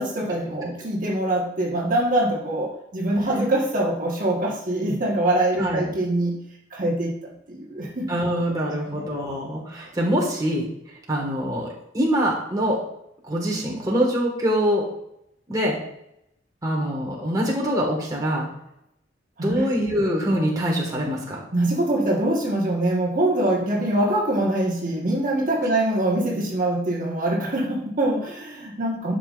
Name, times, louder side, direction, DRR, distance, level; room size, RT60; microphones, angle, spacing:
voice 1, 0.0-6.3 6.7-8.1 8.8-9.0 19.4-19.7 21.5-29.1, right 1 dB, 50° right, -3 dB, 1.4 m, -24 dB
voice 2, 8.1-10.7 11.1-12.8 13.3-14.9 15.5-15.8 16.6-18.5 19.4-21.4, equal, 20° right, -3 dB, 1.6 m, -24 dB
11.0 x 5.8 x 2.5 m, 0.78 s
head